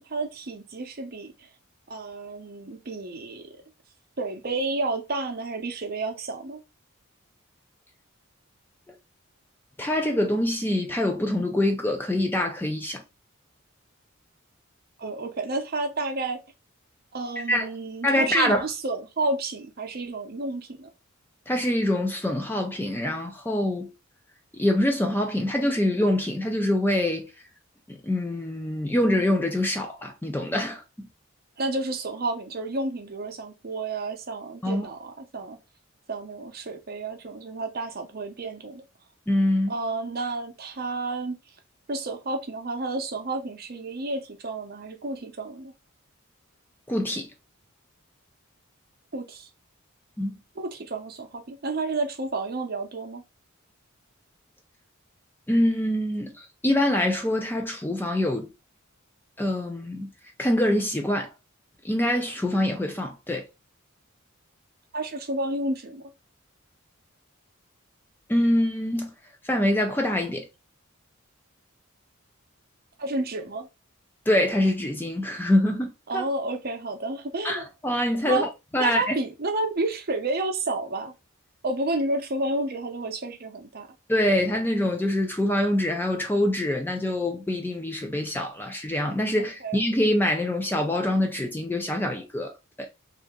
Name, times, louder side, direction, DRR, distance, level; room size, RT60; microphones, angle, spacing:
voice 1, 0.1-1.3 1.9-3.5 4.2-6.6 15.0-16.4 17.1-20.9 31.6-35.6 36.1-38.8 39.7-41.4 41.9-45.7 49.1-49.5 50.6-53.2 64.9-66.1 73.0-73.7 76.1-77.6 78.3-78.4 78.8-81.1 81.6-83.9 89.6-89.8, right 2 dB, 45° right, 0.7 m, -30 dB
voice 2, 9.8-13.0 17.5-17.7 18.0-18.7 21.5-23.9 24.6-27.3 27.9-30.8 34.6-34.9 39.3-39.7 46.9-47.3 50.2-50.4 55.5-58.5 59.4-60.1 60.4-61.3 61.8-63.5 68.3-69.1 69.4-70.5 74.3-76.2 77.4-79.2 84.1-92.5 92.8-92.9, left 1 dB, 10° left, 0.4 m, -25 dB
2.8 x 2.6 x 3.5 m
head